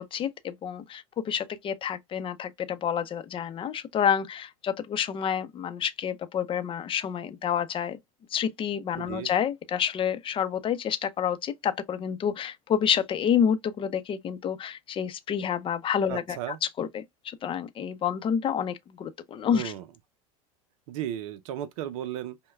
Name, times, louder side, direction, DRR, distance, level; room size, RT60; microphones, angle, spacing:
voice 1, 0.0-8.0 8.3-19.7, left 8 dB, 30° left, 0.6 m, -29 dB
voice 2, 9.0-9.3 16.1-16.6 19.5-19.8 20.9-22.4, right 11 dB, 70° right, 0.6 m, -34 dB
5.3 x 2.2 x 2.2 m
supercardioid pair, 110°, 18 cm